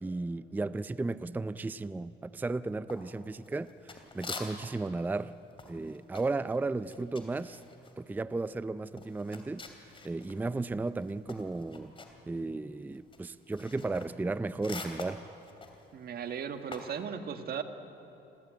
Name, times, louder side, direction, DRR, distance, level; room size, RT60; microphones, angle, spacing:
voice 1, 0.0-5.3 5.7-7.6 8.0-9.6 10.0-11.9 12.3-15.2, right 3 dB, 10° right, 15 dB, 0.4 m, -34 dB
sound 1, 2.9-4.9 5.2-10.4 10.7-17.0, left 3 dB, 25° left, 2.9 m, -46 dB
voice 2, 15.9-17.6, right 7 dB, 50° right, 7 dB, 1.7 m, -37 dB
26.5 x 15.5 x 9.0 m, 2.8 s
cardioid pair, 110°, 20 cm